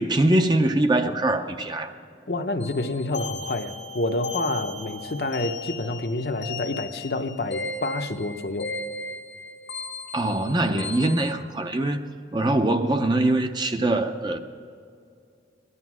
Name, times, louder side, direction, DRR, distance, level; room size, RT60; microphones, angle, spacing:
voice 1, 0.0-1.9 10.1-12.1 12.3-14.4, right 1 dB, 25° right, 0.6 m, -23 dB
voice 2, 2.3-8.7, left 2 dB, 60° left, 0.8 m, -28 dB
sound 1, 2.6-11.3, left 3 dB, 90° left, 1.5 m, -36 dB
17.5 x 11.5 x 6.1 m
head